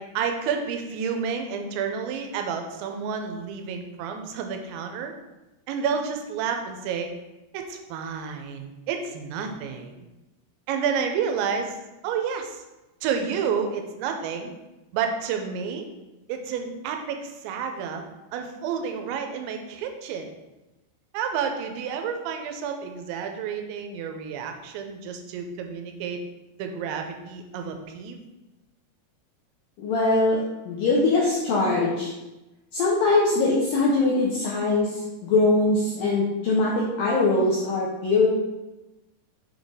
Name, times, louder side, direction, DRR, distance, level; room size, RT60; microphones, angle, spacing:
voice 1, 0.0-5.1 5.7-7.1 7.5-10.1 10.7-12.6 13.0-14.5 14.9-15.9 16.3-18.0 18.3-20.3 21.1-26.2 26.6-28.2, right 6 dB, 90° right, 5 dB, 2.9 m, -30 dB
voice 2, 29.8-30.4 30.7-32.1 32.7-38.3, left 3 dB, 80° left, -4 dB, 2.0 m, -22 dB
7.0 x 4.0 x 3.6 m, 1.0 s
omnidirectional pair, 5.2 m